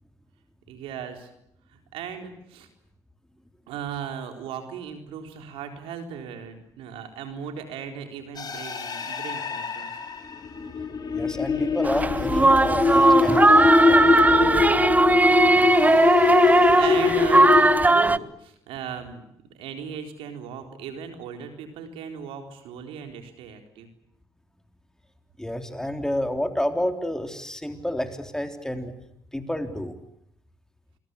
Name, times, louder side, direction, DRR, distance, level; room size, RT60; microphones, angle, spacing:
voice 1, 0.7-1.3 1.7-2.7 3.7-10.0 15.3-19.2 19.5-23.9, right 7 dB, 75° right, 6 dB, 4.1 m, -37 dB
sound 1, 8.4-17.8, left 4 dB, 45° left, 6.3 m, -22 dB
voice 2, 11.1-14.2 25.4-28.9 29.3-29.9, left 1 dB, 5° left, 7 dB, 3.7 m, -30 dB
sound 2, 11.8-18.2, right 2 dB, 15° right, 1.0 m, -18 dB
28.0 x 21.5 x 8.3 m, 0.75 s
hypercardioid pair, 60°, 9 cm